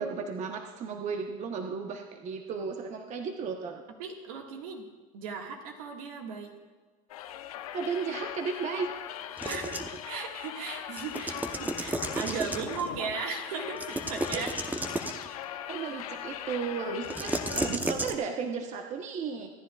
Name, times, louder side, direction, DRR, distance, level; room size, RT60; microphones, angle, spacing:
voice 1, 0.0-3.8 7.7-8.9 9.5-9.6 14.3-14.5 15.7-19.5, right 5 dB, 40° right, 4 dB, 1.1 m, -34 dB
voice 2, 4.0-4.9 5.1-6.5 9.4-9.8 10.0-14.5, right 5 dB, 75° right, 2 dB, 1.9 m, -37 dB
sound 1, 7.1-17.8, left 11 dB, 85° left, 0.8 m, -40 dB
sound 2, 9.4-10.0 11.0-12.9 13.8-15.3 17.0-18.2, right 2 dB, 10° right, 0.8 m, -33 dB
25.0 x 10.0 x 2.4 m, 1.3 s
supercardioid pair, 100°, 18 cm